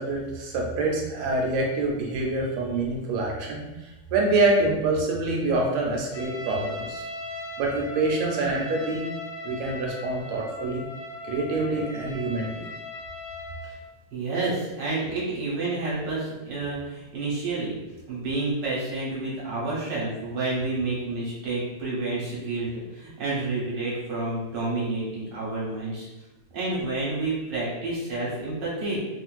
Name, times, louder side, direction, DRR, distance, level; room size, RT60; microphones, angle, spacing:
voice 1, 0.0-7.0 7.6-9.0 9.4-10.9 11.3-12.7, right 2 dB, 80° right, -1 dB, 1.4 m, -26 dB
Trumpet, 6.1-13.8, left 2 dB, 85° left, 0.9 m, -38 dB
voice 2, 14.1-17.8 18.1-26.1 26.5-29.1, right 2 dB, 65° right, -6 dB, 1.4 m, -29 dB
3.5 x 2.4 x 2.3 m, 1.0 s
omnidirectional pair, 2.4 m